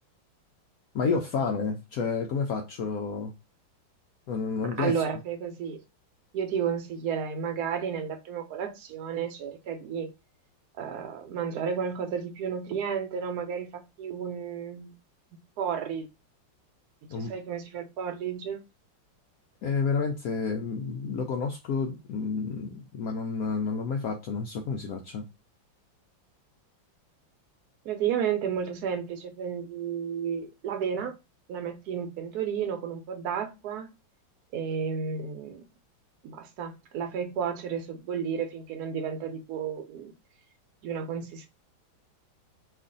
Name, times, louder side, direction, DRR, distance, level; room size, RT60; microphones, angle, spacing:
voice 1, 0.9-3.3 4.3-5.0 17.1-17.3 19.6-25.2, left 5 dB, 90° left, 0.8 m, -30 dB
voice 2, 4.6-5.8 6.3-10.1 10.8-14.9 15.3-16.1 17.1-18.6 27.8-31.1 31.5-33.9 34.5-35.6 36.2-40.1 40.8-41.5, right 7 dB, 65° right, 1.0 m, -32 dB
3.1 x 2.4 x 3.8 m
omnidirectional pair, 2.1 m